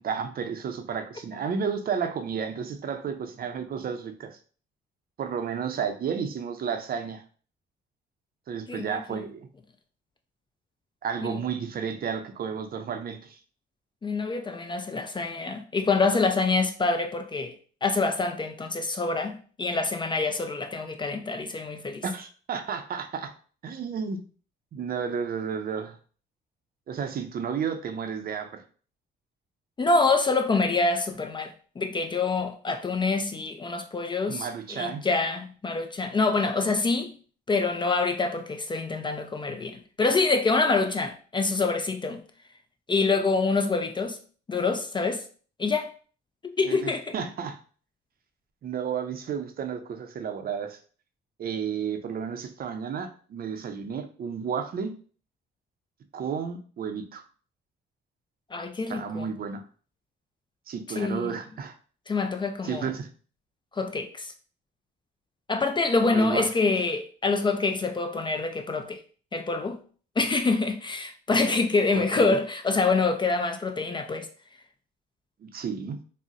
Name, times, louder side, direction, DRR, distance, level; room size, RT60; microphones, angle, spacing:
voice 1, 0.0-4.4 5.2-7.2 8.5-9.5 11.0-13.4 22.0-23.3 23.6-24.2 24.7-26.0 26.9-28.6 34.3-35.0 46.6-47.6 48.6-50.8 51.4-54.9 56.1-57.2 58.9-59.6 60.7-61.7 62.6-63.1 66.1-66.5 71.9-72.4 75.4-76.0, right 6 dB, 50° right, 0.5 m, -32 dB
voice 2, 8.7-9.2 11.2-11.3 14.0-17.6 17.8-22.0 29.8-37.1 37.5-42.2 42.9-44.2 44.5-45.2 45.6-45.9 46.4-47.1 58.5-59.3 61.0-61.3 62.1-62.9 63.7-64.3 65.5-69.0 69.3-69.8 70.2-74.3, left 3 dB, 25° left, 0.3 m, -26 dB
3.8 x 2.0 x 2.4 m
cardioid pair, 90°, 20 cm